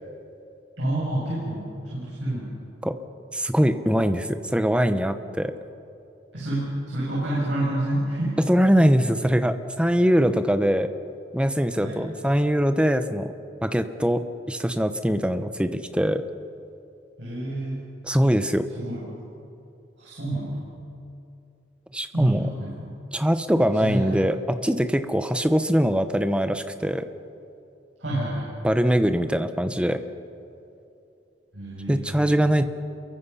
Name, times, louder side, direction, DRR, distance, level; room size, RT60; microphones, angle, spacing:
voice 1, 0.8-2.5 6.3-8.4 11.8-12.0 17.2-17.8 18.8-19.1 20.0-20.6 22.1-22.9 23.8-24.2 28.0-28.5 31.5-32.3, right 1 dB, 65° right, -7 dB, 7.4 m, -28 dB
voice 2, 3.3-5.5 8.4-10.9 11.3-13.3 13.6-14.2 14.5-16.2 18.0-18.6 21.9-22.5 23.1-27.1 28.6-30.0 31.9-32.6, equal, 5° right, 9 dB, 0.9 m, -22 dB
28.5 x 23.0 x 5.7 m, 2.8 s
head